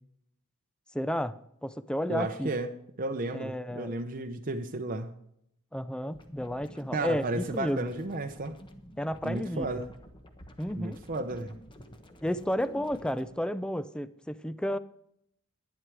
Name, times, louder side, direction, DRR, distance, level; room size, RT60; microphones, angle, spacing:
voice 1, 0.9-2.5 3.3-3.9 5.7-7.9 9.0-9.7 10.6-11.0 12.2-14.8, equal, 5° left, 0.5 m, -32 dB
voice 2, 2.1-2.7 3.0-5.1 6.9-8.5 9.2-9.9 10.8-11.6, right 2 dB, 40° right, 0.8 m, -33 dB
sound 1, 6.1-13.3, equal, 20° left, 1.2 m, -50 dB
11.0 x 11.0 x 4.7 m
head